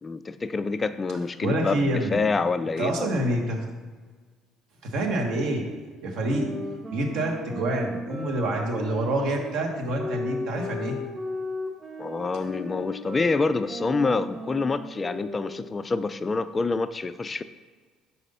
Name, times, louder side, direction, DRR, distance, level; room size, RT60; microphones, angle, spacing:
voice 1, 0.0-3.1 12.0-17.4, left 4 dB, 30° left, 13 dB, 0.3 m, -27 dB
voice 2, 1.4-2.2 2.8-3.6 4.8-5.6 6.0-6.5 6.9-11.0, right 1 dB, 65° right, 1 dB, 1.2 m, -27 dB
sound 1, 6.2-15.9, left 1 dB, 25° right, 1.3 m, -36 dB
4.9 x 4.2 x 5.4 m, 1.5 s
hypercardioid pair, 60°, 0 cm